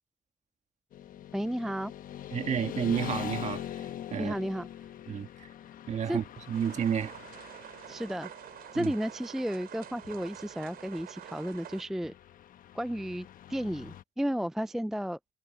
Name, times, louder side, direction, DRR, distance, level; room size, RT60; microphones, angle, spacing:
Motorcycle / Traffic noise roadway noise, 0.9-14.0, left 11 dB, 55° left, 1.0 m, -43 dB
voice 1, 1.3-1.9 4.2-4.7 6.1-6.2 7.9-8.3 8.7-12.1 12.7-15.2, equal, ahead, 0.3 m, -33 dB
voice 2, 2.3-4.3 5.1-5.5 5.9-7.1 8.7-8.9, right 8 dB, 45° right, 1.8 m, -31 dB
sound 1, 6.5-11.8, right 11 dB, 65° right, 4.7 m, -47 dB
cardioid pair, 110°, 17 cm